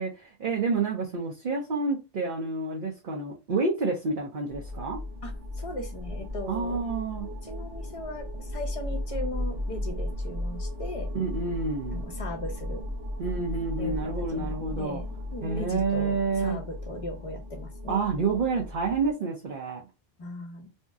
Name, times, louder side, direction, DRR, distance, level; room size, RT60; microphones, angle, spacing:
voice 1, 0.0-5.0 6.5-7.3 11.1-12.0 13.2-15.0 15.4-16.6 17.9-19.8, right 4 dB, 55° right, 0.8 m, -29 dB
sound 1, 4.5-19.1, left 1 dB, 80° right, 1.1 m, -35 dB
voice 2, 5.2-6.8 7.2-11.1 11.9-12.9 13.8-18.1 20.2-20.7, left 1 dB, 35° left, 0.9 m, -38 dB
2.7 x 2.1 x 3.4 m
omnidirectional pair, 1.1 m